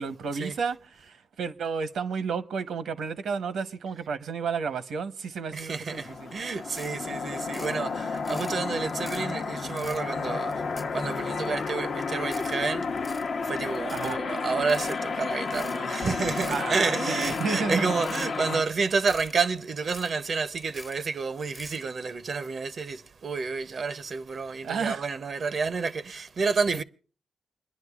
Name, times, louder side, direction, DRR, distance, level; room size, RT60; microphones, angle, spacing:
voice 1, 0.0-6.3 7.7-7.9 13.9-14.2 16.5-18.0 24.6-25.0, right 5 dB, 85° right, 0.9 m, -32 dB
voice 2, 5.5-26.8, right 4 dB, 60° right, 0.5 m, -30 dB
sound 1, 5.9-18.6, left 4 dB, 70° left, 0.8 m, -32 dB
sound 2, 6.7-7.0 7.3-7.8 8.1-8.5 8.9-9.3 9.7-10.0 10.4-11.2 11.6-11.7 12.2-12.6 12.9-13.3 13.7-14.2 14.6-15.0 15.4-15.8 16.2-16.7 17.1-17.5 17.9-18.3 18.6-18.8 19.1-19.4 19.7-20.2 20.6-21.0 21.4-21.8, left 2 dB, 30° left, 0.7 m, -45 dB
28.5 x 10.5 x 2.3 m
cardioid pair, 60°, 0 cm